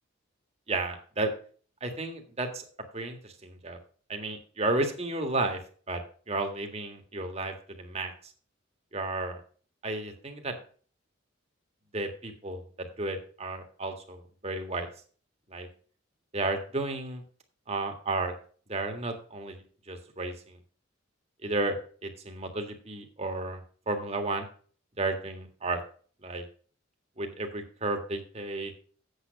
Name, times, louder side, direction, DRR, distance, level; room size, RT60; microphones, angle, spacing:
voice 1, 0.7-1.3 1.8-2.7 2.9-3.8 4.1-5.6 5.9-8.1 8.9-9.4 9.8-10.6 11.9-14.9 15.5-15.7 16.3-17.2 17.7-18.3 18.7-20.6 21.4-23.6 23.8-24.5 25.0-25.8 26.2-26.4 27.2-28.7, right 2 dB, 30° right, 4 dB, 1.7 m, -33 dB
8.4 x 7.7 x 5.2 m, 0.43 s
head